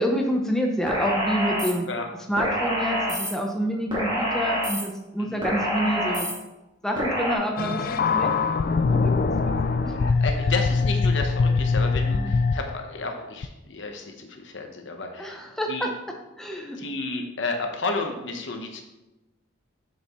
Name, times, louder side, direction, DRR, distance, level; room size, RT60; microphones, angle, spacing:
voice 1, 0.0-1.9 2.3-6.3 6.8-8.3 8.9-9.6 9.8-10.0 12.1-12.3 15.2-15.9 16.4-16.8, equal, 5° left, 0 dB, 0.7 m, -28 dB
sound 1, 0.9-1.7 2.4-3.3 3.9-4.8 5.4-6.3 7.0-7.4, equal, 25° right, 2.2 m, -26 dB
sound 2, 7.6-12.8 13.4-13.5, left 4 dB, 45° left, 0.3 m, -23 dB
voice 2, 9.9-15.4 15.7-15.9 16.7-18.8, left 3 dB, 70° left, 4 dB, 1.0 m, -32 dB
6.7 x 6.6 x 3.1 m, 0.99 s
head